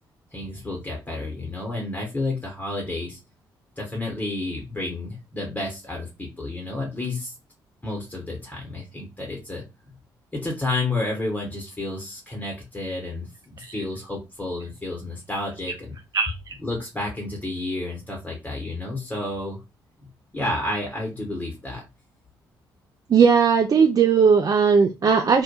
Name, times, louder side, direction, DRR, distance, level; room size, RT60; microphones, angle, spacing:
voice 1, 0.3-3.2 3.8-7.3 7.8-9.6 10.3-16.0 16.6-19.6 20.3-21.8, left 2 dB, 15° left, 0.9 m, -31 dB
voice 2, 16.1-16.5 23.1-25.4, right 6 dB, 35° right, 0.3 m, -18 dB
2.2 x 2.1 x 2.8 m
hypercardioid pair, 45°, 11 cm